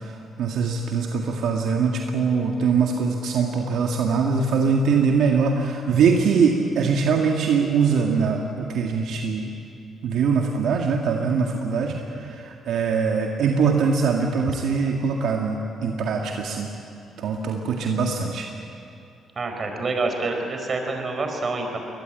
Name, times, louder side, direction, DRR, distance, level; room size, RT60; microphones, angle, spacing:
voice 1, 0.4-9.5 10.0-16.7 17.2-18.5, right 5 dB, 75° right, 1 dB, 1.9 m, -22 dB
voice 2, 19.4-21.8, right 3 dB, 40° right, 4 dB, 4.7 m, -27 dB
23.0 x 20.0 x 9.1 m, 2.6 s
cardioid pair, 90°, 0 cm